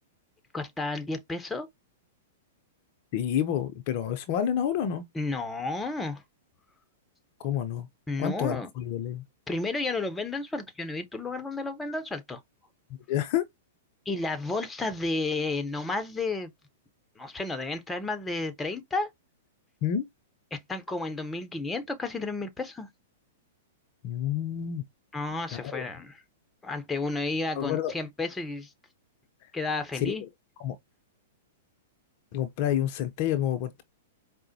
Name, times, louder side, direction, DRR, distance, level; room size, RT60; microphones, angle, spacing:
voice 1, 0.5-1.7 5.1-6.2 8.1-8.7 9.5-12.4 14.1-16.5 17.2-19.1 20.5-22.9 25.1-26.2 26.6-28.7 29.5-30.2, left 3 dB, 10° left, 0.8 m, -32 dB
voice 2, 3.1-5.0 7.4-7.9 8.2-9.2 13.1-13.4 19.8-20.0 24.0-24.8 25.5-25.8 27.6-27.9 30.0-30.3 30.6-30.8 32.3-33.8, left 10 dB, 50° left, 0.6 m, -29 dB
4.7 x 2.1 x 2.7 m
hypercardioid pair, 105°, 0 cm